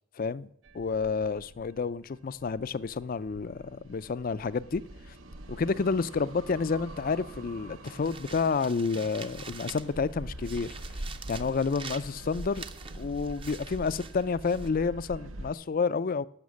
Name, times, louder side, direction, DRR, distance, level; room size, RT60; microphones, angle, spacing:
voice 1, 0.2-0.5 0.7-4.8 5.5-10.7 11.3-12.6 13.0-16.3, left 4 dB, 40° left, 0.4 m, -30 dB
sound 1, 0.6-15.5, right 1 dB, 75° right, 0.9 m, -44 dB
sound 2, 7.8-10.1 10.4-14.7, right 5 dB, 25° right, 0.6 m, -46 dB
12.5 x 5.9 x 8.4 m
head